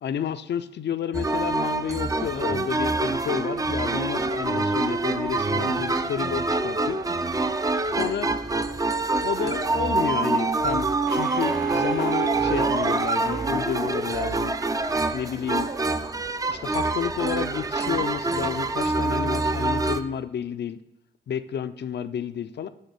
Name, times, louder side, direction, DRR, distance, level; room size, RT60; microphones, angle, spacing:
voice 1, 0.0-7.0 7.9-8.3 9.2-14.6 15.1-15.7 16.5-20.8 21.3-22.7, left 8 dB, 60° left, 12 dB, 0.4 m, -30 dB
sound 1, 1.1-20.0, right 3 dB, 15° right, 0.4 m, -25 dB
sound 2, 11.1-14.7, right 4 dB, 80° right, 1.3 m, -43 dB
6.4 x 3.9 x 5.3 m, 0.88 s
cardioid pair, 60°, 20 cm